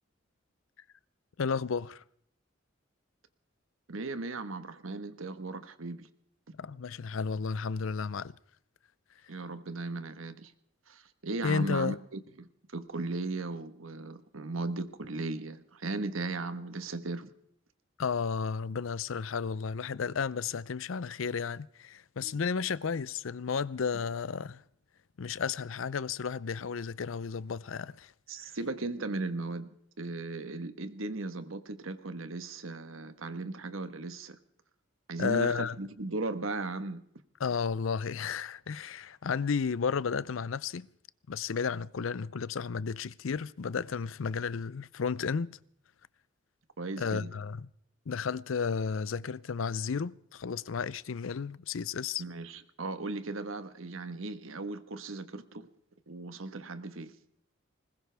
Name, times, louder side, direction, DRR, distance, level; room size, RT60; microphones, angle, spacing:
voice 1, 1.4-2.0 6.6-8.3 11.4-12.0 18.0-24.6 25.2-28.1 28.4-28.5 35.2-35.8 37.4-40.9 41.3-45.5 47.0-47.7 48.1-52.2, left 5 dB, 80° left, 0.5 m, -33 dB
voice 2, 3.9-6.1 9.3-10.5 10.9-17.3 22.2-22.5 28.3-34.4 35.1-37.0 46.8-47.3 52.2-55.7 56.1-57.1, right 3 dB, 85° right, 1.3 m, -37 dB
20.5 x 20.0 x 3.4 m
head